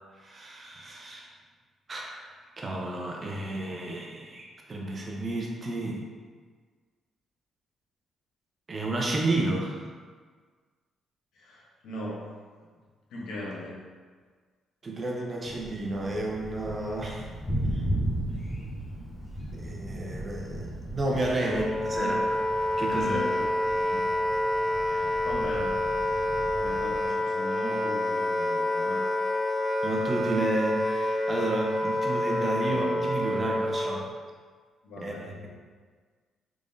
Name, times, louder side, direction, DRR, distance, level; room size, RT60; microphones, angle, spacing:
voice 1, 0.2-1.3 1.9-2.2 2.6-6.0 8.7-9.8 14.8-17.2 17.7-17.8 19.5-22.2 22.8-23.2 29.8-34.1 35.0-35.1, right 2 dB, 35° right, -1 dB, 0.7 m, -31 dB
voice 2, 11.3-12.3 13.1-13.8 21.4-21.7 22.0-22.2 22.9-23.5 23.7-24.1 24.9-25.8 26.5-29.1 32.6-33.0 34.8-35.4, left 1 dB, 80° left, -3 dB, 0.8 m, -38 dB
Thunder, 15.4-27.1, right 1 dB, 25° left, 1.1 m, -36 dB
Wind instrument woodwind instrument, 21.4-34.1, left 1 dB, ahead, 0.3 m, -28 dB
3.6 x 3.4 x 2.6 m, 1.5 s
cardioid pair, 90°, 0 cm